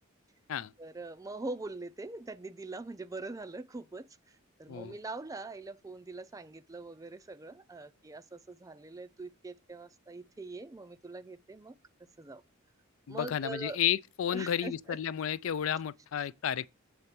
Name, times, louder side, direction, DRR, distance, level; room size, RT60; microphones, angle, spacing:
voice 1, 0.8-11.8 12.2-12.4 13.1-13.8 14.3-15.0, right 3 dB, 15° right, 0.4 m, -43 dB
voice 2, 13.1-16.7, left 9 dB, 70° left, 0.4 m, -32 dB
8.1 x 3.2 x 5.9 m
head